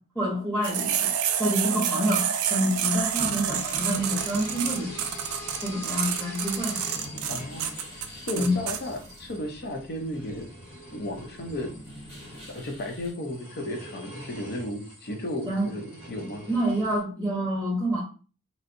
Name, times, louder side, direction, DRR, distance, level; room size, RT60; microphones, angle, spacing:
voice 1, 0.1-1.1 1.4-5.1 5.6-6.8 8.4-8.5 15.5-15.7 16.5-18.0, equal, 5° left, 0.9 m, -27 dB
sound 1, 0.6-8.8, right 9 dB, 75° right, 0.4 m, -28 dB
sound 2, 2.9-13.1, equal, 25° left, 1.5 m, -46 dB
sound 3, 3.5-17.0, equal, 80° left, 1.4 m, -44 dB
voice 2, 7.3-7.7 8.3-10.5 10.9-11.7 12.5-16.5, left 1 dB, 50° left, 0.6 m, -34 dB
3.0 x 2.6 x 2.6 m
head